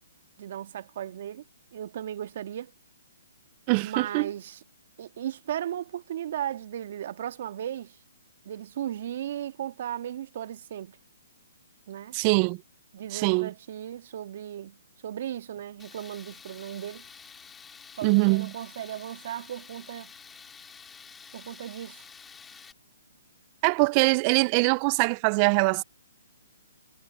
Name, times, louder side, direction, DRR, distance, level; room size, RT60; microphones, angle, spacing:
voice 1, 0.4-1.4 1.7-2.7 3.8-4.6 5.0-8.0 8.5-11.0 11.9-12.2 12.9-14.8 15.0-17.0 18.0-20.1 21.3-22.1, right 10 dB, 50° right, 1.7 m, -36 dB
voice 2, 3.7-4.3 12.1-12.6 13.1-13.5 18.0-18.5 23.6-25.8, right 29 dB, 30° right, 0.5 m, -23 dB
Tools, 15.8-22.7, left 6 dB, 10° left, 2.9 m, -49 dB
hypercardioid pair, 150°, 0 cm